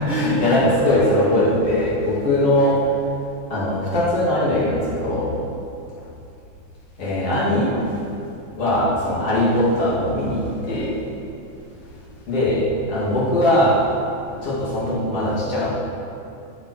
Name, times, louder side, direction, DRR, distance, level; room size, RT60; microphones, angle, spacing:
voice 1, 0.1-2.8 3.5-5.3 7.0-7.7 8.6-10.9 12.3-13.8 14.4-15.8, left 1 dB, 45° left, -7 dB, 3.3 m, -20 dB
14.0 x 6.0 x 6.2 m, 2.6 s
omnidirectional pair, 3.8 m